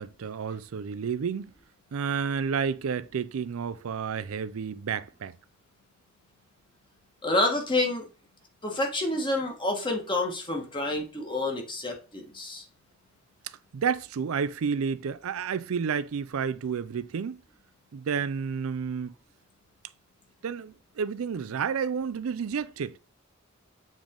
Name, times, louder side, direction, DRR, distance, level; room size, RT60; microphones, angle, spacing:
voice 1, 0.0-1.5 1.9-5.3 13.7-17.4 17.9-19.1 20.4-23.0, right 6 dB, 75° right, 0.4 m, -30 dB
voice 2, 7.2-8.1 8.6-12.6, left 2 dB, 25° left, 1.5 m, -28 dB
7.3 x 3.4 x 3.7 m
head